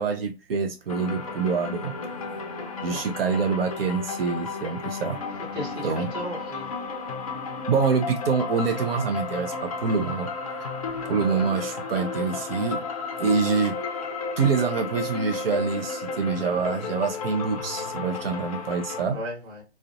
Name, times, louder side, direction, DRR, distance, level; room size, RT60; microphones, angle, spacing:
voice 1, 0.0-1.9 2.8-5.2 5.8-6.1 7.7-10.3 11.1-12.8 13.2-13.8 14.4-19.2, right 5 dB, 60° right, 0.5 m, -26 dB
sound 1, 0.9-19.0, left 4 dB, 35° left, 0.4 m, -33 dB
voice 2, 5.5-6.7 11.0-11.4 19.1-19.6, equal, 15° right, 0.6 m, -36 dB
2.5 x 2.1 x 2.4 m
figure-of-eight pair, 140°, 33 cm